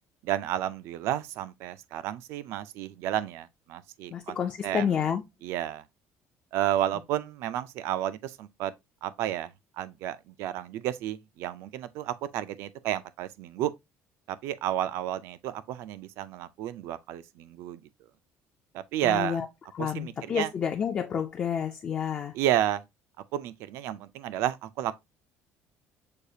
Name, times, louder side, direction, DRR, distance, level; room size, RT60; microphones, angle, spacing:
voice 1, 0.2-4.4 4.6-5.0 5.4-5.8 6.5-8.7 9.0-9.5 9.8-13.7 14.3-17.8 18.7-19.4 19.8-20.5 22.3-22.8 23.3-25.0, right 12 dB, 60° right, 0.4 m, -31 dB
voice 2, 4.1-5.2 19.0-19.5 19.7-22.3, left 8 dB, 25° left, 0.4 m, -29 dB
6.5 x 2.4 x 2.7 m
cardioid pair, 175°, 5 cm